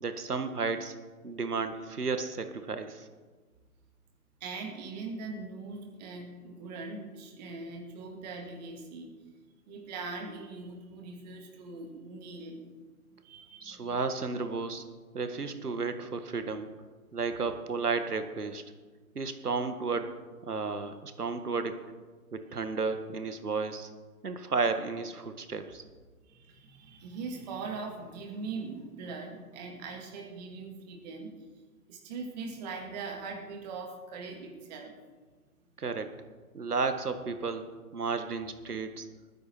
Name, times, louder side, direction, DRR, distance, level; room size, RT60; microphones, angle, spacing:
voice 1, 0.0-0.9 1.2-3.1 13.6-14.8 15.1-16.7 17.1-18.6 19.2-20.1 20.4-21.8 22.3-23.9 24.2-25.8 35.8-36.1 36.5-37.7 37.9-39.1, right 4 dB, 75° right, 8 dB, 1.8 m, -33 dB
voice 2, 4.4-9.1 9.7-12.7 13.2-14.0 15.4-15.5 26.3-31.3 31.9-35.0, right 4 dB, 25° right, 3 dB, 2.4 m, -41 dB
20.0 x 9.9 x 4.6 m, 1.4 s
figure-of-eight pair, 140°, 46 cm